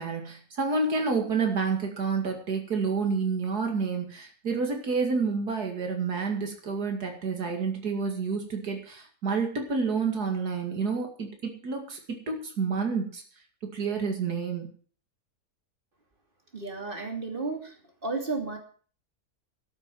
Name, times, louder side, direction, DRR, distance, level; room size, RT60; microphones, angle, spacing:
voice 1, 0.0-13.2 13.7-14.7, right 4 dB, 90° right, 3 dB, 2.8 m, -29 dB
voice 2, 16.5-17.7 18.0-18.6, right 3 dB, 35° right, 3 dB, 3.1 m, -32 dB
12.5 x 8.9 x 7.6 m, 0.43 s
omnidirectional pair, 1.6 m